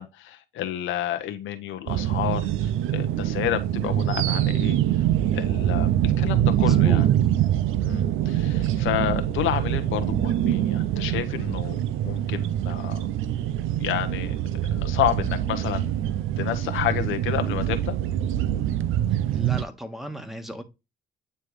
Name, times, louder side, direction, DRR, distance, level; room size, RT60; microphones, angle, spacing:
voice 1, 0.0-4.8 5.3-7.1 7.8-13.1 13.8-14.4 14.8-15.9 16.4-18.0, left 11 dB, 85° left, 0.9 m, -30 dB
sound 1, 1.9-19.7, right 11 dB, 90° right, 0.5 m, -24 dB
voice 2, 6.4-7.1 19.3-20.6, equal, ahead, 1.4 m, -35 dB
9.3 x 3.4 x 3.1 m
cardioid pair, 90°, 20 cm